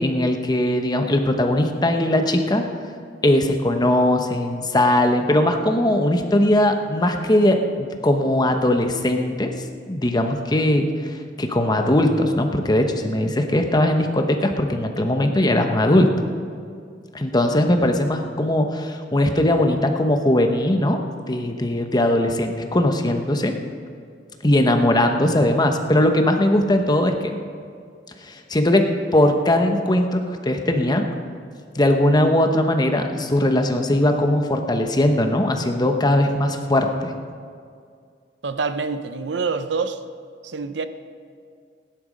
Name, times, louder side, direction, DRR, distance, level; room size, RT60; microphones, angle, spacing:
voice 1, 0.0-2.6 3.2-9.5 9.9-16.1 17.1-21.0 21.3-23.5 24.4-27.4 28.2-31.1 31.7-37.1, left 1 dB, 25° left, 5 dB, 1.0 m, -20 dB
voice 2, 38.4-40.0 40.4-40.9, right 4 dB, 75° right, 11 dB, 0.6 m, -26 dB
16.5 x 10.5 x 5.2 m, 2.2 s
head